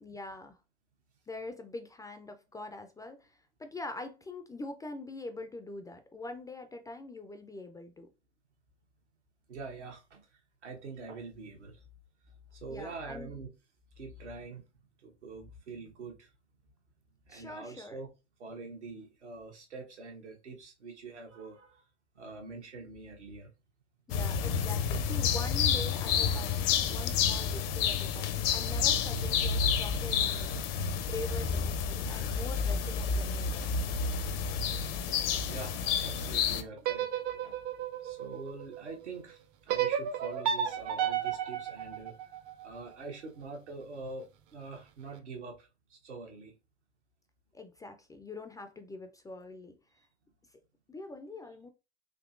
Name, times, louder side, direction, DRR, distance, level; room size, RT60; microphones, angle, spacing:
voice 1, 0.0-0.6 1.3-8.1 12.7-13.4 17.3-18.0 24.1-33.7 47.5-49.8 50.9-51.7, left 2 dB, 10° left, 0.3 m, -44 dB
voice 2, 9.5-11.8 12.5-13.5 13.9-14.6 15.0-16.3 17.3-18.1 18.4-21.8 22.1-23.5 35.4-37.6 38.0-39.4 39.7-42.2 42.6-46.6, right 3 dB, 85° right, 1.1 m, -45 dB
sound 1, 24.1-36.6, left 6 dB, 60° left, 0.6 m, -30 dB
sound 2, 36.8-39.0 39.7-42.8, right 9 dB, 55° right, 0.6 m, -33 dB
3.7 x 2.8 x 2.4 m
hypercardioid pair, 80°, 34 cm